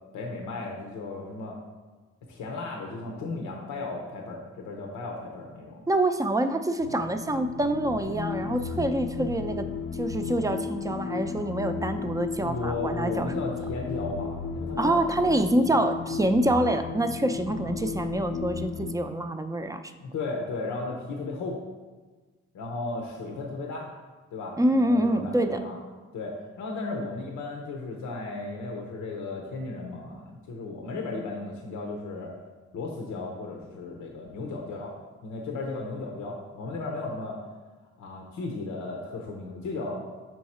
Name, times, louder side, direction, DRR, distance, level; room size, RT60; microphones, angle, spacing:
voice 1, 0.1-1.6 2.3-5.8 12.4-15.1 17.6-17.7 20.0-21.6 22.5-23.9 24.3-25.8 26.1-32.3 32.7-35.0 35.2-37.4 38.0-40.1, left 3 dB, 90° left, 0 dB, 0.8 m, -35 dB
voice 2, 5.9-9.7 10.0-13.3 14.8-19.8 24.6-25.6, right 1 dB, 10° right, 8 dB, 0.5 m, -26 dB
sound 1, 6.8-18.9, left 6 dB, 45° left, 0.5 m, -34 dB
5.6 x 4.6 x 4.2 m, 1.3 s
cardioid pair, 70°, 29 cm